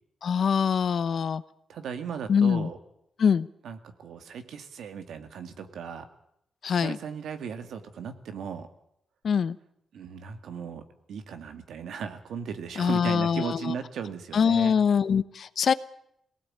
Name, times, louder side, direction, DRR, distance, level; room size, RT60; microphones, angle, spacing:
voice 1, 0.2-1.4 2.3-2.7 3.2-3.5 6.6-7.0 9.2-9.6 12.8-13.7 14.3-15.7, left 6 dB, 65° left, 15 dB, 0.9 m, -23 dB
voice 2, 1.7-2.8 3.6-6.1 6.8-8.7 9.9-10.8 11.1-14.8, right 7 dB, 90° right, 8 dB, 2.1 m, -37 dB
22.5 x 18.5 x 8.8 m, 0.77 s
cardioid pair, 100°, 0 cm